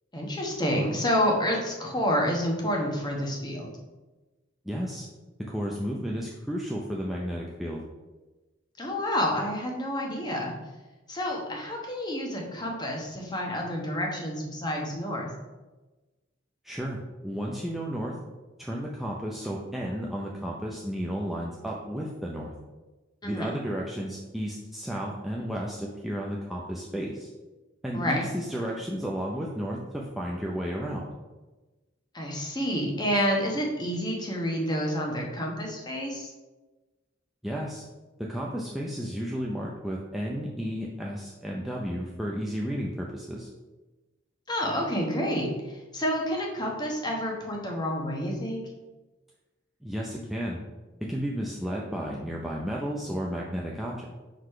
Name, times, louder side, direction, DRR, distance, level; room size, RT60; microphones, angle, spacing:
voice 1, 0.1-3.7 8.8-10.5 11.1-15.3 23.2-23.5 27.9-28.2 32.1-36.3 44.5-48.6, equal, 20° left, 0 dB, 1.1 m, -29 dB
voice 2, 4.6-5.1 5.5-7.8 16.6-18.1 18.6-22.5 23.2-27.3 27.8-31.1 37.4-37.8 38.2-43.5 49.8-50.6 51.1-54.0, equal, ahead, -4 dB, 0.5 m, -33 dB
4.8 x 4.1 x 5.5 m, 1.2 s
head